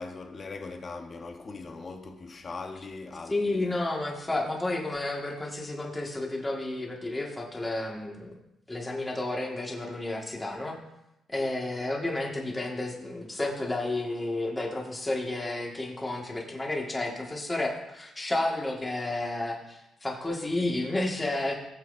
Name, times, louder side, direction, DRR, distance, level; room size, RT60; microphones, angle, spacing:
voice 1, 0.0-3.8, left 3 dB, 35° left, 1.1 m, -40 dB
voice 2, 3.3-8.3 8.7-10.8 11.3-21.6, left 2 dB, 15° left, 1.9 m, -31 dB
18.0 x 7.6 x 2.7 m
cardioid pair, 120°, 0 cm